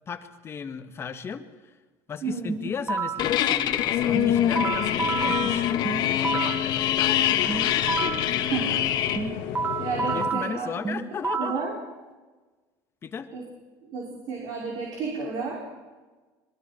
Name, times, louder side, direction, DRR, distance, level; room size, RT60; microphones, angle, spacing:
voice 1, 0.1-1.8 2.1-7.3 10.0-11.7 13.0-13.3, left 6 dB, 30° left, 8 dB, 1.6 m, -36 dB
voice 2, 2.2-2.6 8.3-8.8 9.8-10.9 11.4-11.7 13.3-13.4 13.9-15.6, right 5 dB, 60° right, -3 dB, 5.5 m, -32 dB
sound 1, 2.5-3.3 4.2-6.7 7.5-8.3 9.2-11.7, right 5 dB, 15° right, 1.5 m, -30 dB
sound 2, 3.2-9.2, left 11 dB, 55° left, 1.6 m, -25 dB
sound 3, 3.9-10.3, left 9 dB, 75° left, 1.8 m, -34 dB
26.0 x 22.5 x 4.5 m, 1.3 s
cardioid pair, 135°, 9 cm